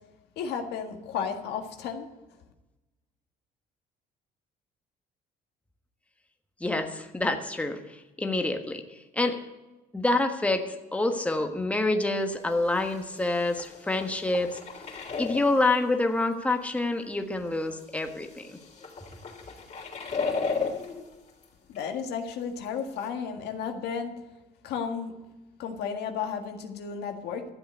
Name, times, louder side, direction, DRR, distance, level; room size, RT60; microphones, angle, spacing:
voice 1, 0.4-2.1 21.7-24.1 24.6-25.2 25.6-27.5, left 6 dB, 80° left, 5 dB, 1.8 m, -33 dB
voice 2, 6.6-9.4 9.9-14.6 15.2-18.6, left 2 dB, 10° left, 5 dB, 1.3 m, -27 dB
sound 1, 12.3-12.4 12.8-15.7 16.5-16.6 17.8-21.5 21.8-22.0 22.3-22.4 23.0-23.1, left 4 dB, 40° left, 3.6 m, -35 dB
13.0 x 7.8 x 8.0 m, 1.1 s
cardioid pair, 110°, 17 cm